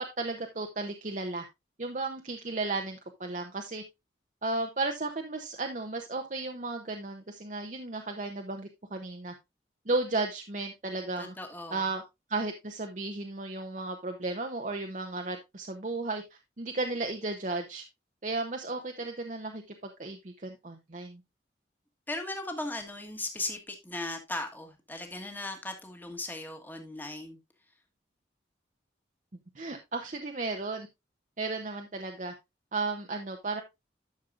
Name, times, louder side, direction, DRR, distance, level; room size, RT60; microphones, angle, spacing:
voice 1, 0.2-1.5 1.8-3.8 4.4-9.3 9.9-11.3 11.7-12.0 12.3-16.2 16.6-17.8 18.2-19.6 20.0-21.2 29.5-30.9 31.4-32.3 32.7-33.6, right 3 dB, 40° right, 0.8 m, -34 dB
voice 2, 11.2-11.8 22.1-27.4, left 2 dB, 10° left, 1.4 m, -37 dB
11.5 x 6.5 x 2.5 m
head